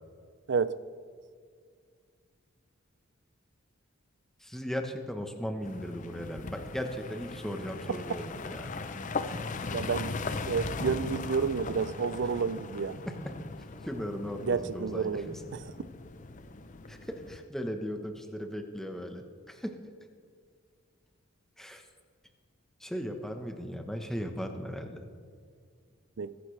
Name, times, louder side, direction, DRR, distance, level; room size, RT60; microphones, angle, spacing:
voice 1, 4.4-8.7 13.1-13.3 13.8-15.4 16.9-19.8 21.6-21.9 22.8-25.1, equal, ahead, 1.0 m, -37 dB
sound 1, 5.6-17.4, left 3 dB, 40° left, 0.5 m, -39 dB
voice 2, 9.7-10.1 10.5-13.0 14.4-15.6 26.2-26.3, right 5 dB, 60° right, 0.4 m, -30 dB
21.0 x 10.5 x 3.3 m
head